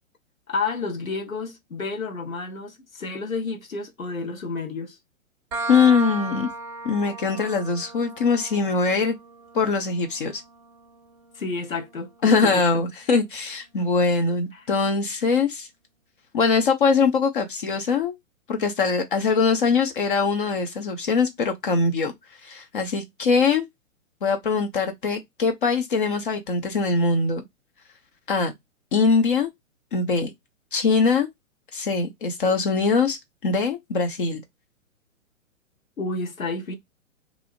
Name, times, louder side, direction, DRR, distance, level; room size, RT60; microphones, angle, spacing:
voice 1, 0.5-5.0 11.3-12.8 14.5-14.6 36.0-36.7, left 3 dB, 90° left, 0.7 m, -30 dB
sound 1, 5.5-12.9, right 3 dB, 25° right, 0.7 m, -37 dB
voice 2, 5.7-6.5 6.8-9.2 9.5-10.4 12.2-15.7 16.3-18.1 18.5-22.1 22.4-23.7 24.2-27.4 28.3-28.5 28.9-29.5 29.9-30.3 30.7-31.3 31.7-34.4, left 4 dB, 40° left, 0.5 m, -22 dB
2.5 x 2.0 x 2.8 m
figure-of-eight pair, 115°, 40 cm